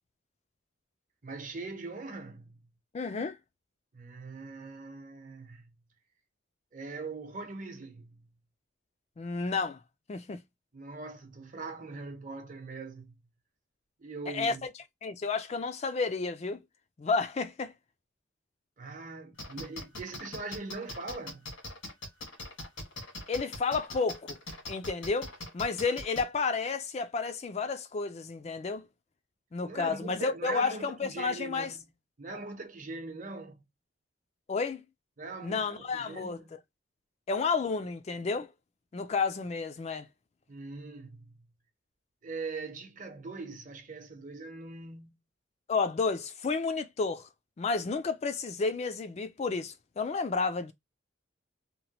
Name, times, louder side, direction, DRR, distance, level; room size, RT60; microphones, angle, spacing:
voice 1, 1.2-2.6 3.9-5.7 6.7-8.3 10.7-13.1 14.0-14.7 18.8-21.5 29.6-31.9 32.2-33.6 35.2-36.6 40.5-41.5 42.2-45.2, right 3 dB, 45° right, 0.7 m, -41 dB
voice 2, 2.9-3.4 9.2-9.8 10.1-10.4 14.3-14.6 15.0-16.6 17.0-17.7 23.3-24.4 24.7-28.9 29.5-31.7 34.5-34.8 35.4-36.4 37.3-38.5 38.9-40.1 45.7-47.3 47.6-50.7, left 4 dB, 35° left, 0.4 m, -31 dB
sound 1, 19.4-26.2, left 2 dB, 90° left, 1.6 m, -41 dB
3.0 x 2.2 x 2.8 m
head